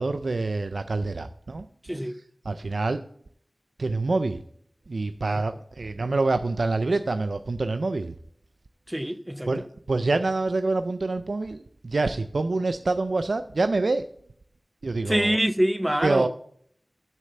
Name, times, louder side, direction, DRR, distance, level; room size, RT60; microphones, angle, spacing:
voice 1, 0.0-1.6 2.0-3.0 3.8-4.4 4.9-8.1 9.5-14.1 14.8-15.4 16.0-16.3, right 3 dB, 80° right, 0.4 m, -26 dB
voice 2, 8.9-9.5 15.1-16.3, equal, 10° right, 0.6 m, -25 dB
7.5 x 6.5 x 7.7 m
wide cardioid pair, 65°, 0 cm